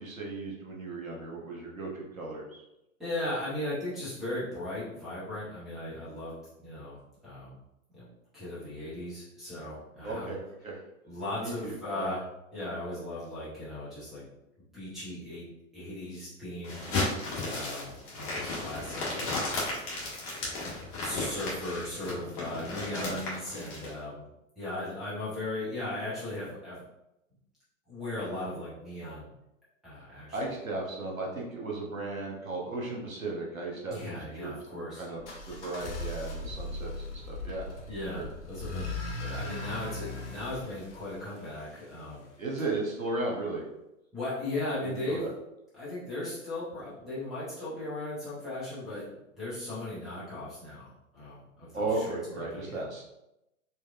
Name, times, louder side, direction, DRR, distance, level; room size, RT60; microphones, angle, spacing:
voice 1, 0.0-2.6 10.0-10.4 10.6-10.7 11.4-12.1 23.0-23.2 30.3-37.6 38.1-38.2 42.4-43.6 44.8-45.3 51.7-53.1, right 2 dB, 85° right, -1 dB, 1.1 m, -35 dB
voice 2, 3.0-7.0 7.2-7.6 7.9-8.1 8.3-10.3 11.0-12.2 12.5-14.3 14.7-15.4 15.7-17.2 17.5-19.6 20.4-20.6 21.0-24.2 24.6-26.8 27.9-29.3 29.8-30.5 33.9-35.1 37.9-38.9 39.2-42.3 44.1-45.3 45.7-53.1, left 1 dB, ahead, -11 dB, 0.3 m, -37 dB
sound 1, 16.6-23.9, left 2 dB, 35° left, 1.4 m, -34 dB
sound 2, 35.2-42.1, left 2 dB, 60° left, 0.9 m, -39 dB
4.4 x 2.7 x 2.4 m, 0.89 s
figure-of-eight pair, 105°, 40 cm